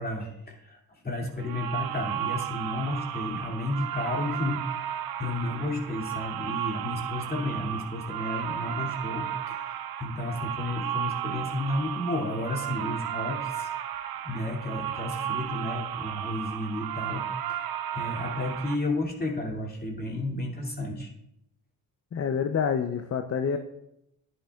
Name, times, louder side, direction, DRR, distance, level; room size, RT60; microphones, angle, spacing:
voice 1, 0.0-13.7 14.2-21.1, left 1 dB, 25° left, 0 dB, 2.5 m, -32 dB
sound 1, 1.4-18.8, right 10 dB, 80° right, 0.6 m, -34 dB
voice 2, 22.1-23.6, left 7 dB, 40° left, 8 dB, 0.6 m, -27 dB
11.0 x 10.5 x 2.4 m, 0.82 s
cardioid pair, 80°, 36 cm